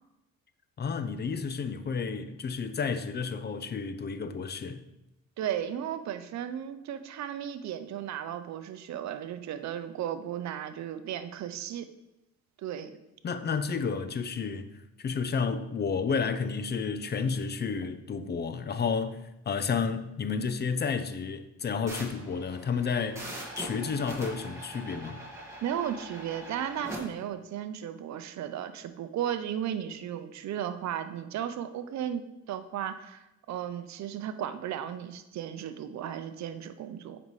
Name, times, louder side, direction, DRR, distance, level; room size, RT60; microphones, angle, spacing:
voice 1, 0.8-4.8 13.2-23.3 23.6-25.2, left 5 dB, 35° left, 0.5 m, -31 dB
voice 2, 5.4-11.9 12.6-12.9 25.6-37.2, right 10 dB, 65° right, 0.6 m, -35 dB
sound 1, 21.9-27.0, right 1 dB, 10° right, 1.9 m, -42 dB
7.8 x 5.4 x 3.2 m
cardioid pair, 90°, 30 cm